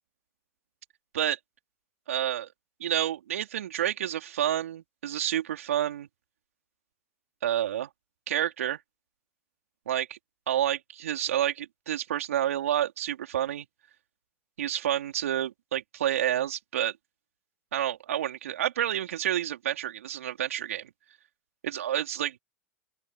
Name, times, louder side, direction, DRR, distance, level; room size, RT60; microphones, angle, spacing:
voice 1, 2.1-2.5 2.8-6.1 7.4-7.9 8.3-8.8 9.9-10.2 10.5-13.7 14.6-16.9 17.7-20.9 21.6-22.3, right 11 dB, 80° right, 4.2 m, -29 dB
open air
hypercardioid pair, 95°, 8 cm